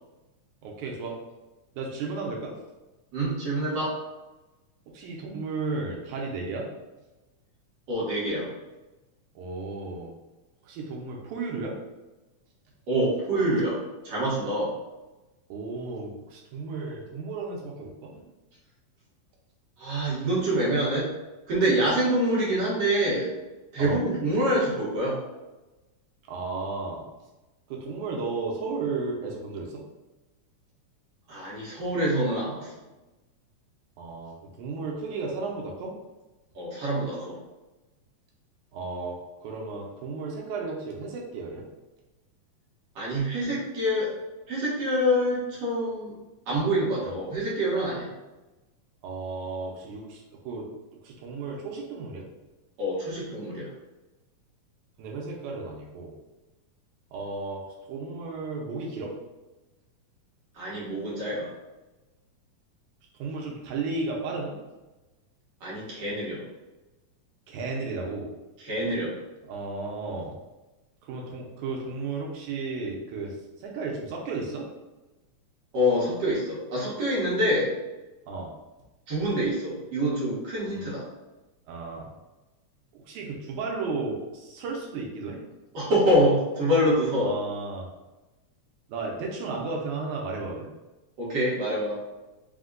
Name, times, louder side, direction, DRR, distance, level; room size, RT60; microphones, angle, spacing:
voice 1, 0.6-1.2 1.8-2.6 4.9-6.7 9.4-10.1 10.6-11.8 15.5-18.2 20.3-20.4 23.8-24.0 26.3-27.0 27.7-29.8 34.0-35.9 38.7-41.7 47.0-47.2 49.0-50.7 51.0-52.3 55.0-56.1 57.1-57.6 57.9-59.1 63.2-64.6 67.5-68.3 69.5-70.3 71.0-74.7 78.3-78.5 80.7-80.9 81.7-82.1 82.9-85.4 87.2-87.9 88.9-90.7, right 3 dB, 80° right, -1 dB, 2.0 m, -34 dB
voice 2, 3.1-4.0 7.9-8.5 12.9-14.7 19.8-21.1 21.5-23.3 23.7-25.2 31.3-32.7 36.6-37.4 43.0-44.1 44.5-46.1 46.5-48.1 52.8-53.7 60.6-61.5 65.6-66.4 68.6-69.1 75.7-77.7 79.1-81.1 85.7-87.4 91.2-92.0, equal, 60° right, -7 dB, 1.8 m, -26 dB
5.1 x 2.1 x 3.7 m, 1.1 s
omnidirectional pair, 3.5 m